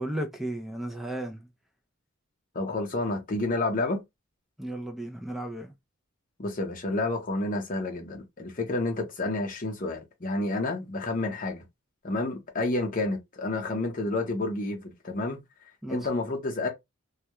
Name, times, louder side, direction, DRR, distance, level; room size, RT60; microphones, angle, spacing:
voice 1, 0.0-1.5 4.6-5.7 15.8-16.1, right 1 dB, ahead, 0.3 m, -34 dB
voice 2, 2.5-4.0 6.4-11.6 12.0-15.4 15.9-16.7, left 2 dB, 40° left, 0.7 m, -30 dB
2.2 x 2.1 x 2.8 m
head